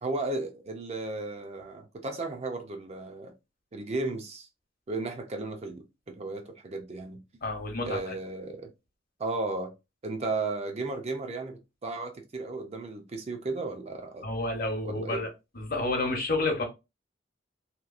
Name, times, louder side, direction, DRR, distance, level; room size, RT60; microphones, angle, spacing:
voice 1, 0.0-3.3 3.7-4.5 4.9-7.2 7.8-8.7 9.2-9.7 10.0-14.3 14.8-15.2, right 3 dB, 35° right, 0.5 m, -34 dB
voice 2, 7.4-8.1 14.2-15.3 15.5-16.6, left 2 dB, 50° left, 0.8 m, -30 dB
2.9 x 2.3 x 2.4 m
head